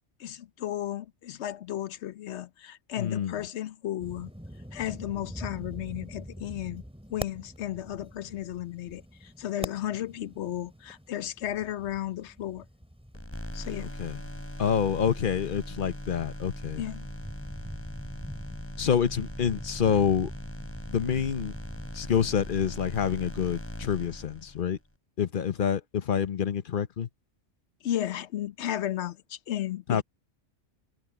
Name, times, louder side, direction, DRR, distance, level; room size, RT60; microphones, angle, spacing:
voice 1, 0.2-4.3 4.7-6.8 7.1-12.7 13.5-14.0 16.8-17.1 27.8-30.0, left 12 dB, 75° left, 1.0 m, -34 dB
voice 2, 3.0-3.3 13.8-14.2 14.6-16.8 18.8-20.3 20.9-21.5 21.9-24.8 25.2-27.1 29.9-30.0, left 8 dB, 50° left, 1.0 m, -27 dB
sound 1, 4.0-22.7, equal, 5° right, 2.9 m, -45 dB
sound 2, 13.1-24.8, left 1 dB, 10° left, 2.8 m, -40 dB
omnidirectional pair, 1.2 m